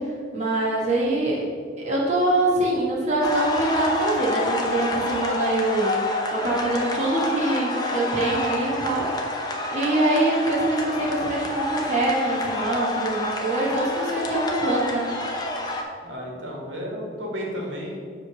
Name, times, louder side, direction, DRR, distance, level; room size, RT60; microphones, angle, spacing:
voice 1, 0.0-1.4 1.8-6.0 6.3-9.3 9.7-15.1, right 2 dB, 40° right, -4 dB, 1.2 m, -24 dB
sound 1, 3.2-15.8, left 2 dB, 20° left, 0.6 m, -28 dB
voice 2, 16.0-18.0, equal, 90° right, -2 dB, 1.7 m, -32 dB
7.3 x 3.2 x 6.1 m, 2.1 s
head